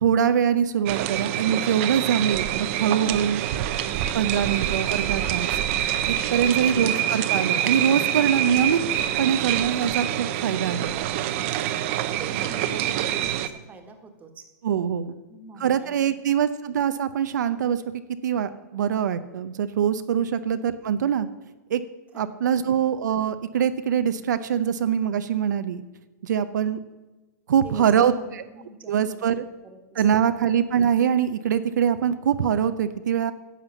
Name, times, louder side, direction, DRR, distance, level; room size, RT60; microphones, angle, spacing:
voice 1, 0.0-3.4 4.1-5.5 6.1-8.8 9.2-10.9 14.6-15.1 15.6-17.8 18.2-21.3 21.7-21.8 22.1-25.8 26.2-26.8 27.5-28.4 28.9-29.4 30.0-33.3, right 8 dB, 90° right, 10 dB, 0.7 m, -23 dB
sound 1, 0.9-13.5, right 11 dB, 45° right, 0.7 m, -26 dB
voice 2, 11.1-14.4 15.3-16.0 16.2-16.3 22.1-22.7 27.6-30.4, right 3 dB, 15° right, 5 dB, 1.6 m, -45 dB
11.0 x 7.4 x 7.1 m, 1.1 s
supercardioid pair, 150°, 9 cm